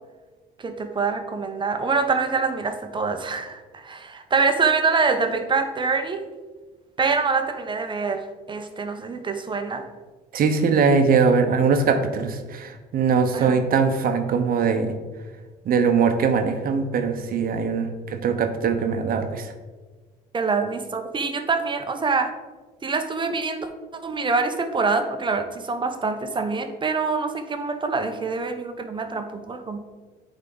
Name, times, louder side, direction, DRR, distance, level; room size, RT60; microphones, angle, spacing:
voice 1, 0.6-6.2 7.0-9.9 13.3-13.6 20.3-22.3 22.8-23.7 24.0-29.8, right 4 dB, 25° right, 7 dB, 0.8 m, -25 dB
voice 2, 10.3-15.0 15.6-19.5, right 5 dB, 55° right, 7 dB, 0.9 m, -21 dB
9.3 x 3.7 x 3.9 m, 1.3 s
supercardioid pair, 90°, 18 cm